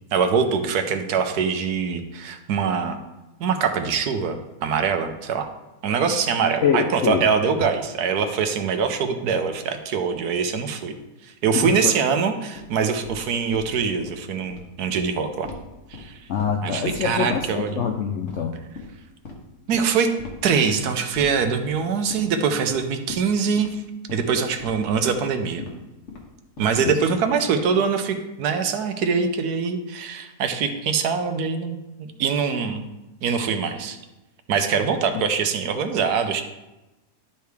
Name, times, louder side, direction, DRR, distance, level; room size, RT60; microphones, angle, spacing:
voice 1, 0.1-3.0 3.4-5.5 5.8-10.9 11.2-15.5 15.9-16.2 16.6-17.8 19.7-20.1 20.4-23.8 24.1-25.7 26.6-32.8 33.2-34.0 34.5-36.4, right 6 dB, 75° right, 7 dB, 1.2 m, -23 dB
voice 2, 6.6-7.2 11.5-11.7 16.3-18.5 26.8-26.9, left 7 dB, 70° left, 4 dB, 0.7 m, -24 dB
sound 1, 12.5-12.6 13.0-13.2 13.5-13.7 14.0-14.1 14.4-14.6 15.0-15.1 15.4-15.6 15.9-16.6 16.9-17.0 17.3-17.4 17.8-17.9 18.3-18.5 18.8-18.9 19.2-19.4 19.7-19.8 20.2-20.3 20.7-20.8 21.2-21.3 21.6-21.8 22.1-22.3 22.6-22.7 23.1-23.2 23.6-23.7 24.1-24.2 24.6-24.7 25.1-25.2 25.6-25.7 26.1-26.3 26.6-26.9, left 5 dB, 50° left, 1.4 m, -37 dB
11.5 x 4.7 x 3.4 m, 1.0 s
omnidirectional pair, 1.8 m